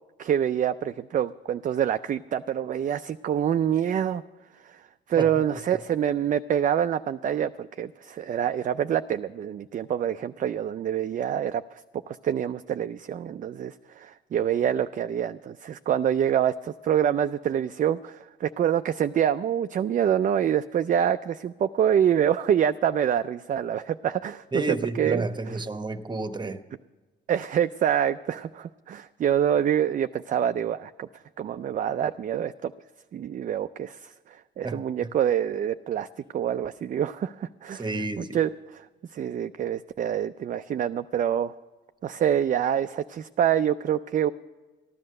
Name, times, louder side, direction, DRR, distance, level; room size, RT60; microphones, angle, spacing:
voice 1, 0.2-4.2 4.6-4.8 5.1-11.8 12.1-25.6 27.3-31.1 31.4-32.7 33.1-36.1 36.3-37.9 38.2-38.9 39.1-41.5 42.0-44.3, right 9 dB, 40° right, 0.4 m, -26 dB
voice 2, 24.5-26.6 34.6-34.8 37.7-38.4, right 2 dB, 20° right, 1.0 m, -30 dB
14.5 x 11.0 x 6.5 m
cardioid pair, 90°, 20 cm